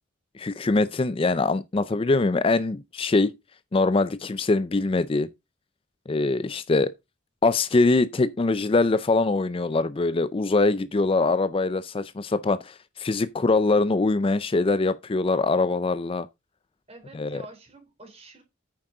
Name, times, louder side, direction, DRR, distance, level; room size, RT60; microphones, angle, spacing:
voice 1, 0.4-3.3 3.7-5.3 6.1-6.9 7.4-16.3 17.2-17.4, left 3 dB, 25° left, 0.4 m, -23 dB
voice 2, 16.9-18.4, right 2 dB, 30° right, 3.4 m, -47 dB
9.2 x 7.4 x 3.8 m
head